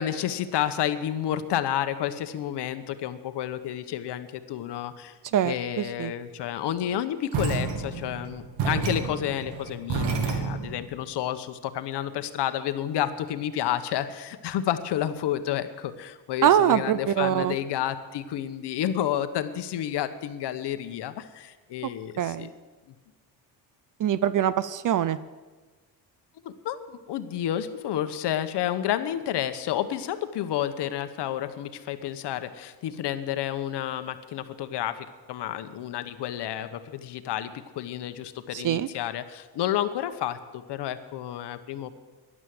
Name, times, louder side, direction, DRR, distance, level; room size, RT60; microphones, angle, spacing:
voice 1, 0.0-5.2 5.4-22.5 26.4-42.0, left 11 dB, 65° left, 11 dB, 1.1 m, -30 dB
voice 2, 5.3-6.1 16.4-17.6 22.2-22.5 24.0-25.2 38.5-38.9, right 10 dB, 45° right, 16 dB, 0.6 m, -23 dB
sound 1, 7.3-10.8, right 5 dB, 70° right, 2.3 m, -30 dB
12.5 x 11.0 x 7.8 m, 1.3 s
cardioid pair, 140°, 43 cm